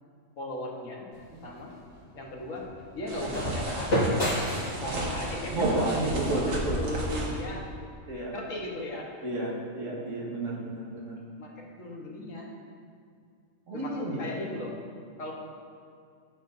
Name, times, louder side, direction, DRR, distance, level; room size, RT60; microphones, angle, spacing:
voice 1, 0.4-1.1 1.4-1.7 2.1-2.7 2.9-4.3 4.8-7.7 8.3-9.1 11.4-12.5 13.7-14.8 15.2-15.3, left 1 dB, 75° left, -2 dB, 1.5 m, -37 dB
sound 1, 1.1-7.2, equal, 50° left, 2.2 m, -33 dB
sound 2, 3.1-7.4, right 1 dB, 90° right, 1.5 m, -33 dB
voice 2, 5.5-6.8 8.1-8.3 9.2-11.2 13.7-14.2, right 2 dB, 70° right, -4 dB, 1.8 m, -31 dB
10.5 x 6.9 x 2.6 m, 2.4 s
omnidirectional pair, 1.4 m